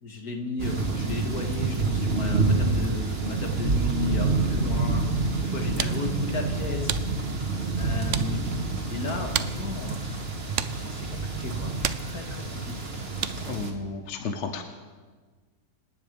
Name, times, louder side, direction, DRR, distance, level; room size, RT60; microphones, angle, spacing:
voice 1, 0.0-5.1 5.4-7.0 7.8-8.4 8.9-10.3 10.7-11.7 12.0-12.9, left 3 dB, 65° left, 2 dB, 2.5 m, -34 dB
sound 1, 0.6-13.7, right 3 dB, 40° right, 1.8 m, -28 dB
sound 2, 5.4-13.6, right 10 dB, 60° right, 0.8 m, -36 dB
voice 2, 13.5-14.6, left 4 dB, 50° left, 6 dB, 1.2 m, -32 dB
26.5 x 9.6 x 5.3 m, 1.4 s
omnidirectional pair, 1.8 m